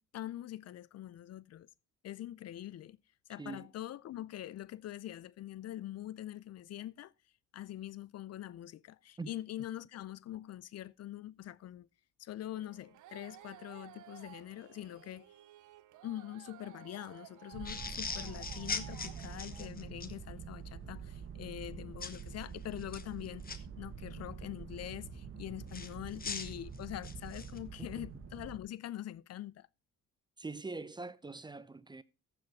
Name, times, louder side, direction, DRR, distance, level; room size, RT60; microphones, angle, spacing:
voice 1, 0.0-1.7 2.0-3.0 3.3-7.1 7.5-11.9 12.2-15.3 16.0-29.7, left 13 dB, 55° left, 0.5 m, -44 dB
sound 1, 12.6-19.7, right 14 dB, 80° right, 0.7 m, -55 dB
sound 2, 17.5-28.6, right 6 dB, 45° right, 1.5 m, -46 dB
sound 3, 17.6-20.1 22.0-22.2 22.8-23.6 25.7-27.6, left 5 dB, 30° left, 1.1 m, -41 dB
voice 2, 30.4-32.0, right 3 dB, 15° right, 0.5 m, -43 dB
14.5 x 5.0 x 4.6 m
cardioid pair, 90°, 30 cm